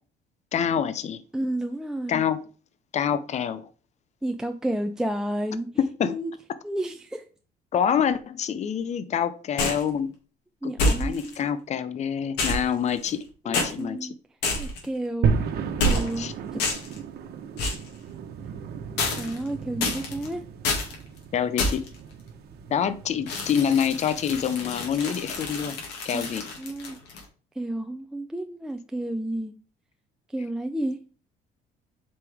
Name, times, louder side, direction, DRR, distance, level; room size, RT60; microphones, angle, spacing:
voice 1, 0.5-1.2 2.1-2.4 2.9-3.7 5.8-6.2 7.7-10.1 10.6-14.1 16.2-16.3 21.3-21.8 22.7-25.8 26.0-26.5, left 8 dB, 45° left, 0.7 m, -26 dB
voice 2, 1.3-2.2 4.2-5.7 6.0-6.3 6.6-7.2 10.6-11.4 12.5-12.6 13.4-14.2 14.6-15.4 15.8-16.6 19.2-20.4 26.1-26.3 26.6-27.0 27.6-29.5 30.3-31.0, right 1 dB, 5° right, 0.5 m, -31 dB
sound 1, 9.6-9.9 10.8-11.4 12.4-13.2 13.5-13.7 14.4-14.9 15.8-16.2 16.6-17.0 17.6-17.9 19.0-19.5 19.8-20.3 20.6-21.0 21.6-22.0 23.3-27.2, left 2 dB, 85° left, 2.4 m, -28 dB
sound 2, 15.2-25.5, right 6 dB, 70° right, 1.2 m, -34 dB
8.1 x 5.2 x 3.5 m
cardioid pair, 110°, 17 cm